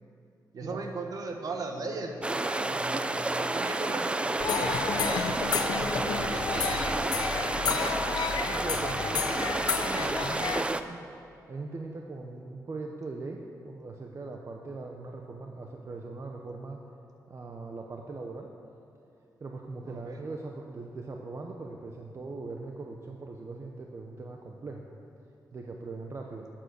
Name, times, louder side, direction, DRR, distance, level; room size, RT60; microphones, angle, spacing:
voice 1, 0.5-7.3 19.8-20.2, right 3 dB, 60° right, 3 dB, 1.4 m, -38 dB
sound 1, 2.2-10.8, right 2 dB, 15° right, 0.4 m, -30 dB
sound 2, 4.4-10.6, left 6 dB, 70° left, 0.6 m, -31 dB
voice 2, 8.4-11.0 11.5-16.8 17.3-18.5 19.4-24.8 25.5-26.5, right 3 dB, 40° right, 2 dB, 0.8 m, -40 dB
12.5 x 8.9 x 6.7 m, 2.7 s
wide cardioid pair, 135°, 7 cm